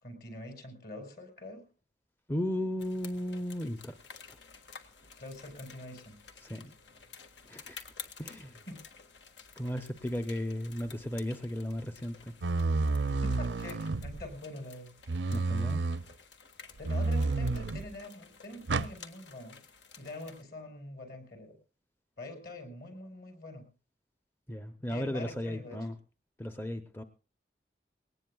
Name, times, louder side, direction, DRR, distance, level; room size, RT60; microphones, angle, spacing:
voice 1, 0.0-1.6 5.2-6.2 8.7-8.8 13.2-14.9 16.8-19.6 20.0-21.6 22.2-23.6 24.9-25.8, left 1 dB, 55° left, 6 dB, 4.7 m, -44 dB
voice 2, 2.3-3.9 6.4-6.7 7.5-7.8 8.2-8.6 9.6-12.3 15.3-15.8 24.5-25.9 26.4-27.0, left 1 dB, 10° left, 9 dB, 0.6 m, -35 dB
sound 1, 2.8-20.4, left 6 dB, 80° left, 1.6 m, -52 dB
sound 2, 12.4-14.3 15.1-16.0 16.8-17.9 18.7-18.9, right 3 dB, 80° right, 0.6 m, -30 dB
21.0 x 18.5 x 2.3 m, 0.35 s
head